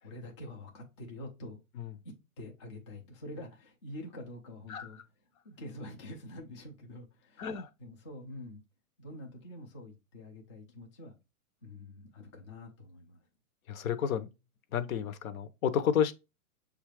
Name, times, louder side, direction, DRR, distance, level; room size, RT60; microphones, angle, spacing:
voice 1, 0.0-1.6 2.0-5.0 5.4-7.5 7.8-8.6 9.0-11.2 11.6-13.2, left 1 dB, 25° left, 0.3 m, -46 dB
voice 2, 7.4-7.7 13.7-14.3 14.7-16.1, left 8 dB, 65° left, 0.7 m, -31 dB
6.5 x 2.4 x 3.1 m
hypercardioid pair, 150°, 44 cm